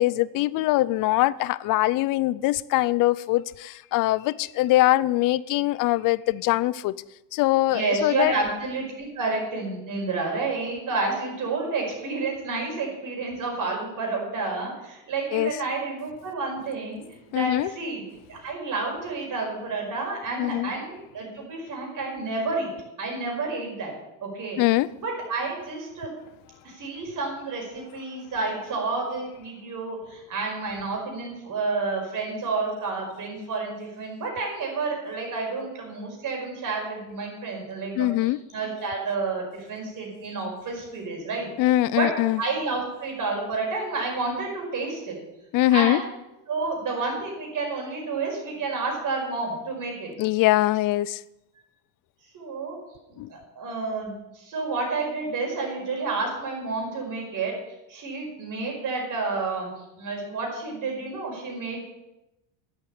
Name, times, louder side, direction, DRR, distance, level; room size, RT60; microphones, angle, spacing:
voice 1, 0.0-7.0 7.3-8.3 15.3-15.5 17.3-17.7 20.4-20.7 24.6-24.9 38.0-38.4 41.6-42.4 45.5-46.0 50.2-51.2 53.2-53.3, left 17 dB, 45° left, 0.4 m, -22 dB
voice 2, 7.7-17.0 17.3-18.0 18.3-22.7 23.0-23.9 24.2-24.6 25.0-26.1 26.6-41.5 41.9-42.1 42.4-45.2 45.7-46.1 46.5-50.1 52.3-52.8 53.3-57.5 57.9-59.7 60.0-61.8, right 3 dB, 40° right, 5.2 m, -30 dB
10.5 x 8.3 x 8.6 m
cardioid pair, 135°, 48 cm